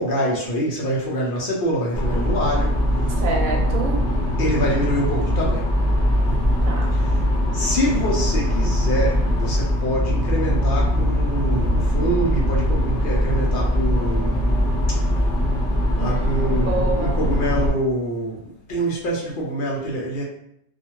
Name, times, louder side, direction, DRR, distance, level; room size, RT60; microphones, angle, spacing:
voice 1, 0.0-2.8 4.4-5.7 6.9-7.2 7.5-15.0 16.0-20.2, equal, 60° left, -3 dB, 0.5 m, -25 dB
sound 1, 1.9-17.7, equal, 5° left, 0.4 m, -21 dB
voice 2, 3.2-4.0 6.6-6.9 16.0-17.2, right 3 dB, 80° right, 0 dB, 1.0 m, -27 dB
2.4 x 2.1 x 2.9 m, 0.72 s
omnidirectional pair, 1.4 m